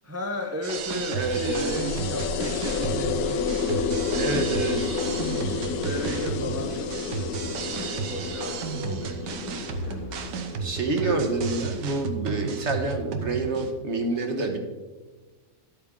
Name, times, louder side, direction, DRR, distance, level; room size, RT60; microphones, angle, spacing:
voice 1, 0.0-4.9 5.4-10.7 11.0-11.8, equal, 25° right, 3 dB, 0.3 m, -36 dB
sound 1, 0.6-13.7, right 6 dB, 80° right, 1.5 m, -33 dB
sound 2, 0.8-12.2, left 5 dB, 60° left, 1.0 m, -32 dB
voice 2, 1.1-1.7 4.1-4.9 10.6-14.6, right 2 dB, 50° right, 4 dB, 1.1 m, -27 dB
sound 3, 1.2-12.2, left 5 dB, 85° left, 1.4 m, -35 dB
11.5 x 8.3 x 3.7 m, 1.3 s
omnidirectional pair, 1.8 m